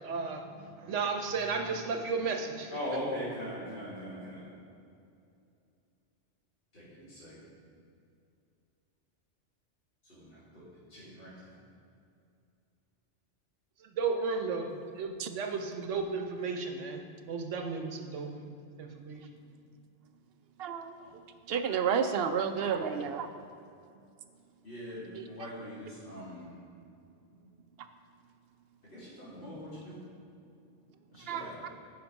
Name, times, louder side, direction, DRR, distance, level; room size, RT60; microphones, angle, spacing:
voice 1, 0.0-2.7 13.8-18.5 18.8-19.3, right 4 dB, 90° right, 4 dB, 1.2 m, -34 dB
voice 2, 2.7-4.4 6.7-7.4 10.0-10.6 10.9-11.6 21.0-21.1 22.4-23.0 24.6-26.6 28.9-30.0 31.1-31.6, equal, 50° left, -11 dB, 2.7 m, -41 dB
voice 3, 20.6-20.9 21.5-23.3 31.3-31.5, right 7 dB, 65° right, 8 dB, 0.7 m, -30 dB
10.5 x 5.1 x 5.3 m, 2.5 s
omnidirectional pair, 1.2 m